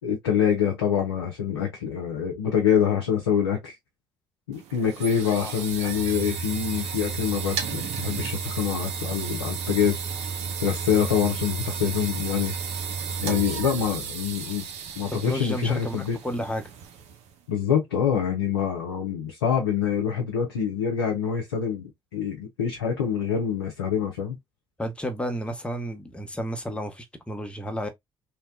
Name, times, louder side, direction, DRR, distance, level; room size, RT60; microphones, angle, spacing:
voice 1, 0.0-3.8 4.5-10.0 10.6-12.5 13.2-14.7 15.0-16.2 17.5-24.4, left 8 dB, 85° left, 0.4 m, -25 dB
sound 1, 4.5-17.3, right 6 dB, 65° right, 0.6 m, -33 dB
voice 2, 15.1-16.7 24.8-27.9, equal, 10° left, 0.8 m, -32 dB
2.9 x 2.1 x 2.4 m
figure-of-eight pair, 45°, 12 cm